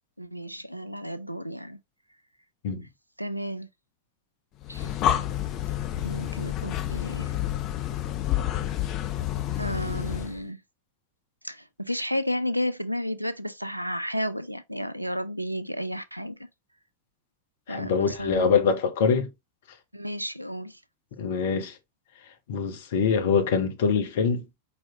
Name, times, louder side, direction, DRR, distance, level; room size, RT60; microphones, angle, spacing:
voice 1, 0.2-1.8 3.2-3.7 4.7-4.9 6.0-7.3 9.6-10.6 11.4-16.4 17.7-18.6 19.9-20.8, equal, 90° right, 0.4 m, -32 dB
Breathing, 4.6-10.4, left 11 dB, 35° left, 0.6 m, -29 dB
voice 2, 17.7-19.3 21.2-21.7 22.5-24.4, left 6 dB, 55° left, 0.9 m, -24 dB
4.5 x 4.1 x 2.8 m
figure-of-eight pair, 90°, 0 cm